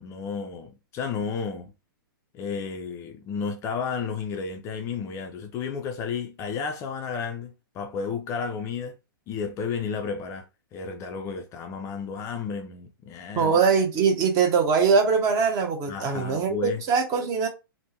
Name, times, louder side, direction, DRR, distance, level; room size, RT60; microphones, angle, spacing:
voice 1, 0.0-1.7 2.3-8.9 9.3-13.5 15.9-16.8, left 6 dB, 25° left, 0.4 m, -32 dB
voice 2, 13.3-17.5, right 5 dB, 30° right, 0.9 m, -22 dB
3.3 x 2.1 x 2.8 m
figure-of-eight pair, 115°, 12 cm